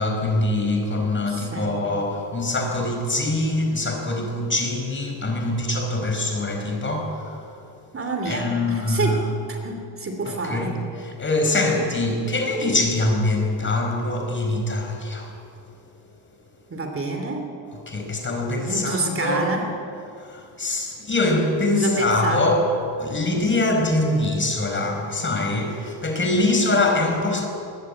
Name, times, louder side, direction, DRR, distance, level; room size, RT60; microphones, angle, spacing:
voice 1, 0.0-7.4 8.3-9.3 10.3-10.8 11.2-15.3 17.9-19.5 20.2-22.7 23.0-27.5, left 2 dB, 25° left, 3 dB, 5.2 m, -23 dB
voice 2, 1.3-1.8 7.9-9.2 9.5-10.8 11.5-11.6 16.7-17.5 18.6-19.7 21.7-22.5 26.3-26.9, right 2 dB, 30° right, 3 dB, 3.0 m, -28 dB
23.5 x 21.0 x 9.8 m, 2.6 s
cardioid pair, 155°, 44 cm